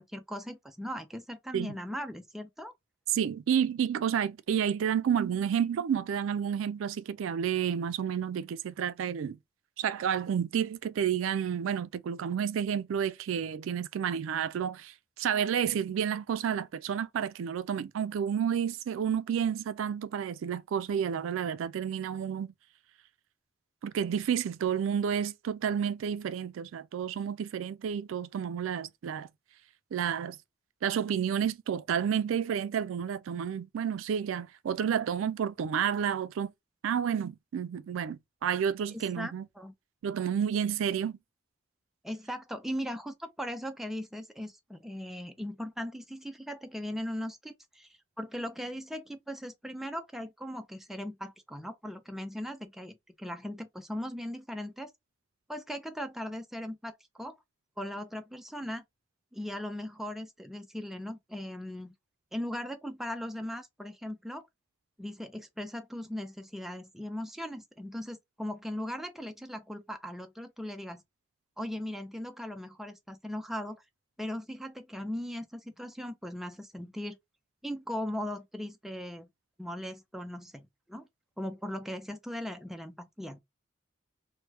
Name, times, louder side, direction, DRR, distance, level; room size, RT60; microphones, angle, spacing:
voice 1, 0.0-2.7 38.9-39.7 42.0-47.9 48.2-54.9 55.5-57.4 57.8-58.8 59.3-61.9 62.3-64.5 65.0-71.0 71.6-73.8 74.2-77.2 77.6-79.3 79.6-81.1 81.4-83.4, equal, ahead, 0.3 m, -38 dB
voice 2, 3.1-9.4 9.8-22.5 23.8-29.3 29.9-30.4 30.8-36.5 36.8-39.4 40.0-41.2, right 8 dB, 80° right, 0.3 m, -30 dB
3.1 x 2.1 x 3.0 m
head